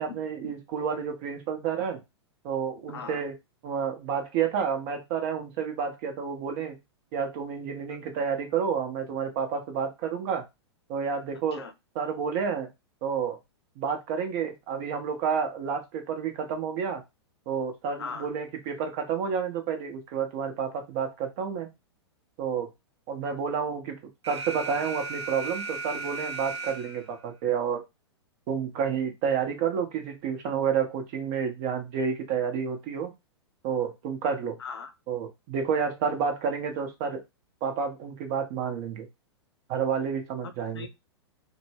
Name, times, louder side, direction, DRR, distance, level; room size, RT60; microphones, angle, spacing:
voice 1, 0.0-2.0 2.4-3.3 3.6-6.8 7.1-10.4 10.9-11.6 11.9-12.7 13.0-13.4 13.8-17.0 17.5-21.7 22.4-22.7 23.1-24.0 24.3-27.8 28.5-33.1 33.6-34.6 35.1-37.2 37.6-39.1 39.7-40.9, right 6 dB, 40° right, 4 dB, 0.7 m, -30 dB
voice 2, 2.9-3.2 11.5-11.7 18.0-18.3 34.6-34.9 40.7-40.9, left 5 dB, 70° left, 9 dB, 0.5 m, -38 dB
Alarm, 24.2-27.2, right 3 dB, 80° right, 0.6 m, -36 dB
2.1 x 2.1 x 3.3 m, 0.22 s
figure-of-eight pair, 105°, 14 cm